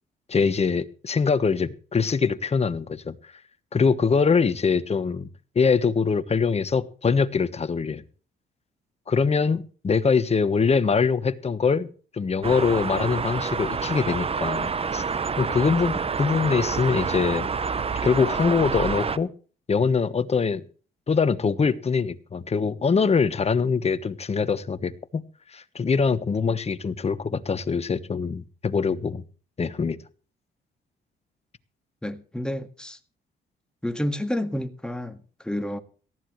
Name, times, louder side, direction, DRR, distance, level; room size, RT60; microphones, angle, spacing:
voice 1, 0.3-3.2 3.7-5.3 5.5-8.0 9.1-11.9 12.1-15.0 15.3-17.5 18.0-19.3 19.7-20.6 21.1-25.2 25.5-29.2 29.6-30.0, left 5 dB, 30° left, 1.2 m, -23 dB
sound 1, 12.4-19.2, right 5 dB, 30° right, 0.8 m, -28 dB
voice 2, 32.0-33.0 33.8-35.8, left 1 dB, 5° left, 1.8 m, -30 dB
18.5 x 14.0 x 3.2 m
cardioid pair, 90°, 20 cm